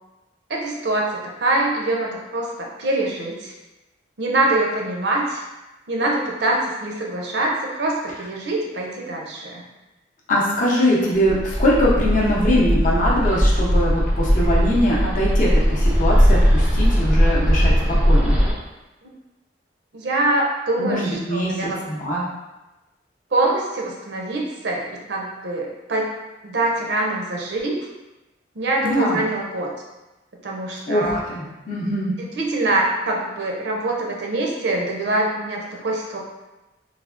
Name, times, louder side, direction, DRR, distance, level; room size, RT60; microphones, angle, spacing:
voice 1, 0.5-3.5 4.2-5.4 5.9-9.6 10.8-11.1 19.9-21.8 23.3-26.1 26.4-27.8 28.6-29.7 30.4-31.2 32.2-36.2, right 2 dB, 60° right, -1 dB, 0.5 m, -24 dB
voice 2, 10.3-18.4 20.8-22.2 28.8-29.2 30.9-32.1, equal, 45° left, -5 dB, 0.6 m, -22 dB
Bird, 11.2-18.5, equal, 5° right, 0.4 m, -18 dB
3.4 x 2.1 x 2.4 m, 1.0 s
head